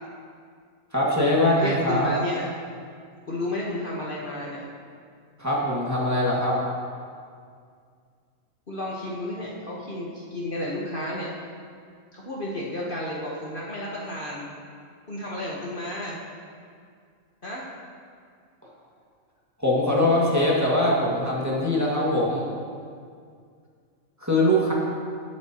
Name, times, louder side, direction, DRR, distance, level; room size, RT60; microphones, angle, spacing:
voice 1, 0.9-2.1 5.4-6.6 19.6-22.5 24.2-24.7, left 1 dB, 10° right, -6 dB, 2.0 m, -22 dB
voice 2, 1.4-2.5 3.3-4.6 8.7-11.3 12.1-14.5 15.1-16.2 17.4-17.7, left 1 dB, 40° left, -5 dB, 1.3 m, -32 dB
18.0 x 7.8 x 3.0 m, 2.2 s
omnidirectional pair, 1.4 m